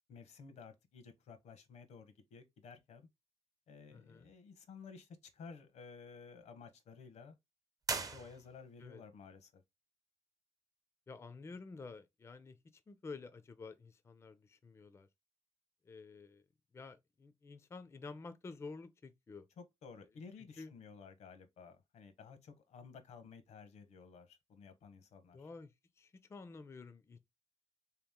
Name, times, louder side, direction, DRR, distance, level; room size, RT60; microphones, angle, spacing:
voice 1, 0.1-3.1 3.7-7.4 7.9-9.6 19.6-25.5, left 5 dB, 80° left, 0.9 m, -54 dB
voice 2, 3.9-4.3 8.8-9.0 11.1-12.6 12.9-15.1 15.9-16.4 16.7-19.5 20.6-20.7 25.3-27.2, left 4 dB, 25° left, 0.4 m, -50 dB
sound 1, 7.8-8.9, right 4 dB, 30° right, 0.6 m, -40 dB
3.4 x 3.0 x 3.5 m
wide cardioid pair, 135°, 11 cm